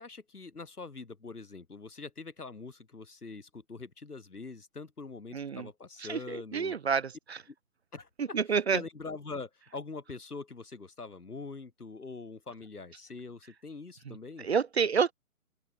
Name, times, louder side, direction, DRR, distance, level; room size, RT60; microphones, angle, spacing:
voice 1, 0.0-6.8 7.9-14.5, left 4 dB, 85° left, 4.0 m, -43 dB
voice 2, 5.3-5.6 6.1-6.2 6.5-7.0 8.3-8.8 14.4-15.1, right 6 dB, 45° right, 0.5 m, -27 dB
open air
figure-of-eight pair, 150°, 44 cm